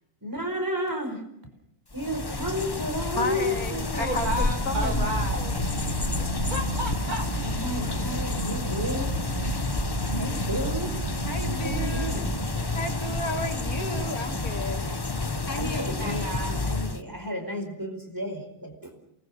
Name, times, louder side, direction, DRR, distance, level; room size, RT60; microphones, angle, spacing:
voice 1, 0.2-1.2 1.9-4.1 7.3-9.2 10.1-10.9 11.6-12.3 15.5-19.0, equal, 15° right, 4 dB, 4.8 m, -32 dB
sound 1, 1.9-17.0, left 3 dB, 20° left, 0.7 m, -30 dB
voice 2, 3.2-5.1 11.3-12.2 12.7-14.8 15.5-16.3, left 2 dB, 75° left, 4 dB, 3.4 m, -33 dB
sound 2, 3.8-12.9, right 2 dB, 50° right, 2.0 m, -33 dB
voice 3, 4.0-5.6 6.2-7.3 15.6-16.5, right 1 dB, 80° right, 2 dB, 6.6 m, -33 dB
28.0 x 20.5 x 6.5 m, 0.79 s
omnidirectional pair, 1.6 m